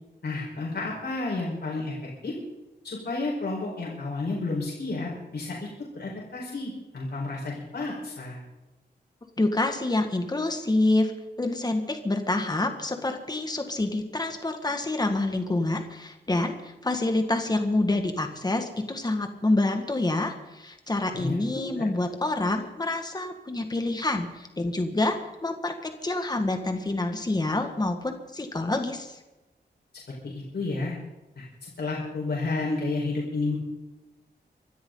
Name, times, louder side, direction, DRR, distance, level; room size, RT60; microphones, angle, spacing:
voice 1, 0.2-1.9 2.2-2.3 2.8-5.6 5.9-8.4 21.1-21.8 30.2-30.9 31.4-33.6, left 3 dB, 65° left, -4 dB, 4.9 m, -31 dB
voice 2, 9.4-11.1 11.4-29.2, left 2 dB, 20° left, 5 dB, 1.8 m, -27 dB
25.0 x 13.0 x 4.0 m, 1.1 s
wide cardioid pair, 160°, 18 cm